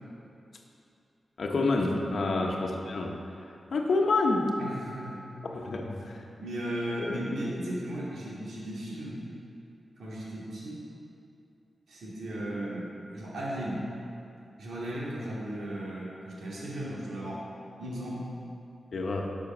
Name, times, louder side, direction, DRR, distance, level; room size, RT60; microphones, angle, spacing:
voice 1, 1.4-3.2 3.7-4.5 5.4-6.2 7.0-7.1 18.9-19.3, left 3 dB, 60° left, 1 dB, 1.2 m, -28 dB
voice 2, 4.6-5.2 6.4-9.2 10.0-10.8 11.9-13.8 14.6-17.4 17.8-18.3, right 1 dB, 85° right, -6 dB, 2.6 m, -36 dB
11.0 x 6.4 x 6.2 m, 2.6 s
wide cardioid pair, 125°, 0 cm